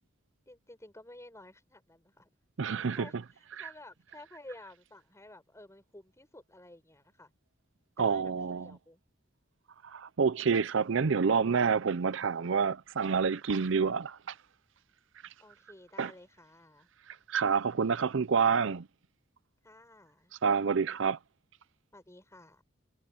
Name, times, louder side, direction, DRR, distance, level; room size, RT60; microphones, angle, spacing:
voice 1, 0.5-2.3 2.9-7.3 8.0-9.0 15.4-16.9 19.6-20.3 21.9-22.6, left 1 dB, 15° left, 6.4 m, -52 dB
voice 2, 2.6-3.1 3.6-3.7 8.0-8.7 9.8-14.3 16.0-16.1 17.1-18.9 20.4-21.2, right 5 dB, 70° right, 0.6 m, -28 dB
head